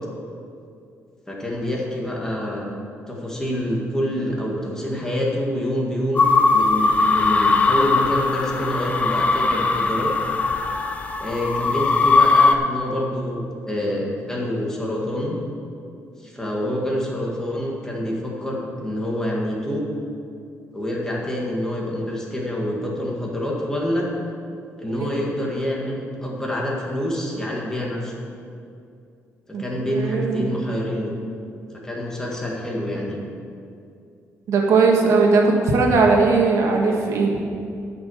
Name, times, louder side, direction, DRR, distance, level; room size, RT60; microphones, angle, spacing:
voice 1, 1.3-2.7 3.1-10.1 11.2-15.4 16.2-19.9 20.7-24.1 24.8-28.1 29.6-31.1 31.8-33.2, equal, 10° left, -3 dB, 1.8 m, -26 dB
sound 1, 6.2-12.6, left 3 dB, 25° left, 0.6 m, -19 dB
voice 2, 29.9-30.4 34.5-37.3, right 4 dB, 70° right, 0 dB, 1.6 m, -18 dB
10.5 x 6.0 x 8.0 m, 2.5 s
cardioid pair, 145°, 5 cm